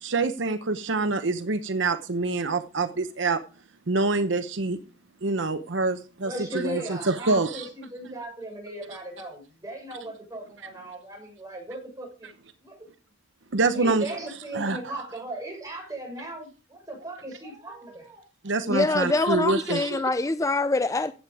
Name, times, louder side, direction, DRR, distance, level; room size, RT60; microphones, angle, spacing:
voice 1, 0.0-3.4 3.9-4.8 5.2-7.7 8.0-8.2 8.9-9.0 13.5-14.2 14.5-15.0 18.4-20.0, right 3 dB, 70° right, 0.9 m, -26 dB
voice 2, 6.2-12.3 12.6-12.8 13.7-18.2, right 1 dB, 20° right, 6.2 m, -37 dB
voice 3, 18.7-21.1, left 2 dB, 15° left, 0.5 m, -24 dB
15.0 x 8.3 x 4.9 m
head